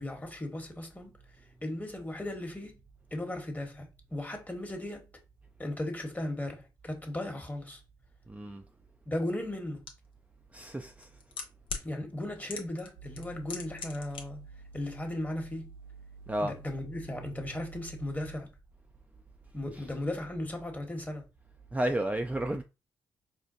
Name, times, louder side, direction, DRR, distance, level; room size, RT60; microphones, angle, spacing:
voice 1, 0.0-2.7 3.1-5.0 5.6-7.8 9.1-9.8 11.8-14.4 14.7-15.7 16.4-18.5 19.5-21.2, left 1 dB, 20° left, 1.2 m, -36 dB
voice 2, 8.3-8.6 10.5-11.1 16.3-16.5 21.7-22.6, right 1 dB, 15° right, 0.5 m, -32 dB
sound 1, 9.9-10.0 10.9-11.9 12.5-12.9 13.2-14.2 14.5-14.6, left 5 dB, 65° left, 0.8 m, -38 dB
sound 2, 13.0-18.4, right 5 dB, 65° right, 0.5 m, -49 dB
4.4 x 2.3 x 2.6 m
hypercardioid pair, 40°, 9 cm